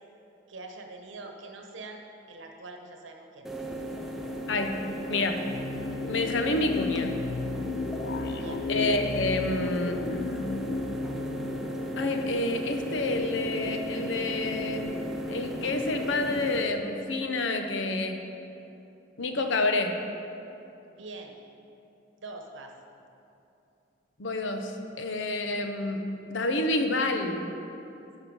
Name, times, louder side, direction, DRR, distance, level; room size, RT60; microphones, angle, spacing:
voice 1, 0.5-3.5 8.4-8.7 20.9-21.4 22.2-22.7, right 3 dB, 75° right, 3 dB, 1.0 m, -44 dB
sound 1, 3.4-16.6, equal, ahead, 0.6 m, -35 dB
voice 2, 5.0-5.4 6.1-7.1 8.7-10.0 12.0-15.0 15.3-18.2 19.2-20.0 24.2-27.5, left 2 dB, 75° left, 5 dB, 0.8 m, -28 dB
sound 2, 5.4-12.6, left 4 dB, 55° left, 0.3 m, -35 dB
11.0 x 5.6 x 5.3 m, 2.8 s
head